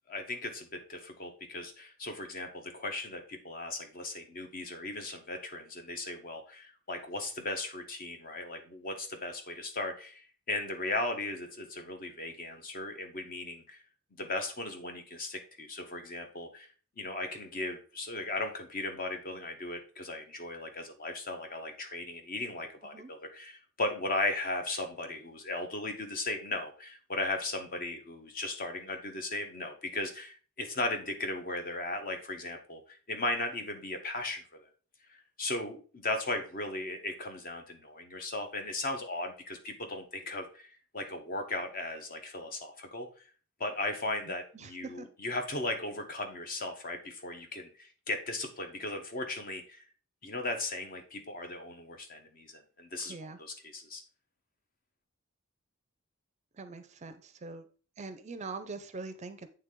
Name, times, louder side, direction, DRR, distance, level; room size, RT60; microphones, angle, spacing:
voice 1, 0.1-13.8 14.2-16.7 17.0-34.7 35.1-43.1 43.6-49.9 50.2-54.0, left 2 dB, 45° left, 6 dB, 1.0 m, -37 dB
voice 2, 44.5-45.1 53.1-53.4 56.6-57.7 58.0-59.5, right 3 dB, 35° right, 10 dB, 0.5 m, -43 dB
8.0 x 3.3 x 3.7 m, 0.39 s
head